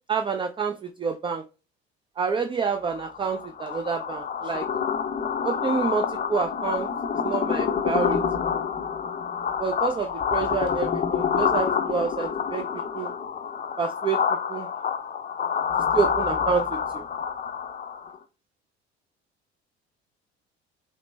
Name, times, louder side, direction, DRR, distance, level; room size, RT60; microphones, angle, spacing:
voice 1, 0.1-1.4 2.2-4.7 5.4-6.9 7.1-8.2 9.6-12.6 12.9-13.1 13.8-14.2 14.5-14.7 15.9-17.0, right 5 dB, 15° right, 7 dB, 0.4 m, -28 dB
sound 1, 2.8-18.2, left 7 dB, 25° left, 0.6 m, -27 dB
5.0 x 2.0 x 3.0 m, 0.31 s
figure-of-eight pair, 60°, 33 cm